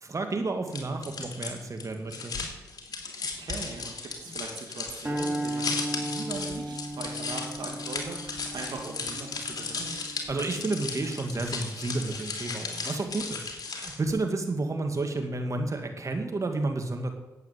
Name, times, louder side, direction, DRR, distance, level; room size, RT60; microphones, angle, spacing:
voice 1, 0.0-2.4 10.3-17.1, right 2 dB, 45° right, 5 dB, 2.3 m, -31 dB
sound 1, 0.7-14.1, left 4 dB, 60° left, 3.1 m, -36 dB
voice 2, 3.4-10.0, right 4 dB, 70° right, 1 dB, 2.2 m, -40 dB
sound 2, 5.0-11.4, right 1 dB, 25° right, 3.8 m, -36 dB
11.5 x 8.5 x 8.3 m, 1.0 s
supercardioid pair, 45°, 7 cm